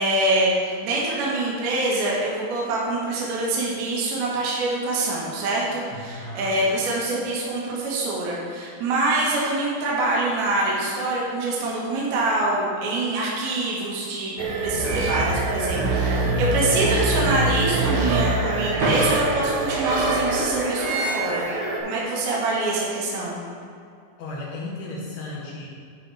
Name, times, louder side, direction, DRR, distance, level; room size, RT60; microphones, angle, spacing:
voice 1, 0.0-21.5 21.8-23.4, right 2 dB, 65° right, -5 dB, 3.1 m, -25 dB
voice 2, 5.9-6.5 16.4-16.8 24.2-25.7, left 2 dB, 85° left, -6 dB, 1.5 m, -34 dB
sound 1, 14.4-21.8, right 2 dB, 80° right, 1.9 m, -24 dB
sound 2, 18.8-21.4, right 1 dB, 45° right, 2.1 m, -30 dB
12.0 x 4.2 x 4.7 m, 2.4 s
omnidirectional pair, 5.2 m